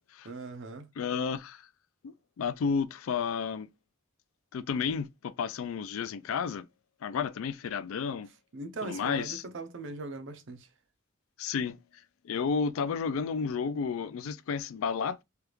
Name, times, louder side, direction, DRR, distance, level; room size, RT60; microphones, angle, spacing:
voice 1, 0.2-0.9 8.5-10.7, right 3 dB, 65° right, 0.6 m, -40 dB
voice 2, 1.0-1.6 2.0-3.7 4.5-6.7 7.0-8.3 8.8-9.4 11.4-11.8 12.2-15.2, left 6 dB, 85° left, 0.3 m, -32 dB
3.4 x 2.3 x 3.0 m
head